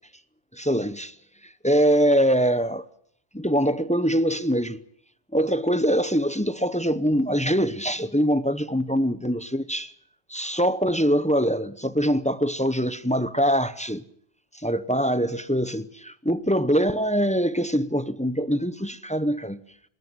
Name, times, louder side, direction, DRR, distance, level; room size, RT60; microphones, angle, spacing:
voice 1, 0.5-1.1 1.6-2.8 3.3-4.8 5.3-9.9 10.3-14.0 14.6-19.6, equal, 5° left, 0.7 m, -23 dB
20.0 x 19.5 x 7.9 m
omnidirectional pair, 1.1 m